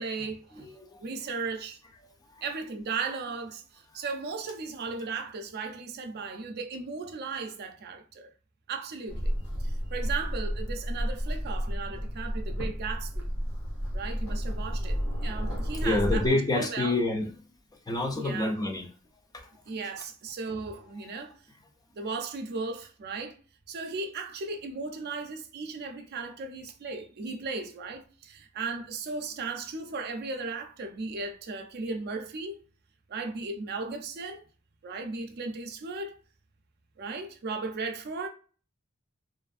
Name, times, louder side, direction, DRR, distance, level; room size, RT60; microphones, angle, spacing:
voice 1, 0.0-0.7 1.0-1.8 2.4-8.3 8.7-9.3 9.6-13.3 13.9-16.2 16.5-17.0 18.2-18.5 19.7-21.4 21.9-23.4 23.7-32.6 33.1-34.4 34.8-36.2 37.0-38.3, right 4 dB, 50° right, 0.4 m, -36 dB
voice 2, 0.6-1.0 15.8-17.3 17.9-18.9 21.1-21.2, left 2 dB, 15° left, 0.4 m, -28 dB
sound 1, 9.1-16.3, equal, 80° left, 1.0 m, -31 dB
2.5 x 2.4 x 2.3 m
head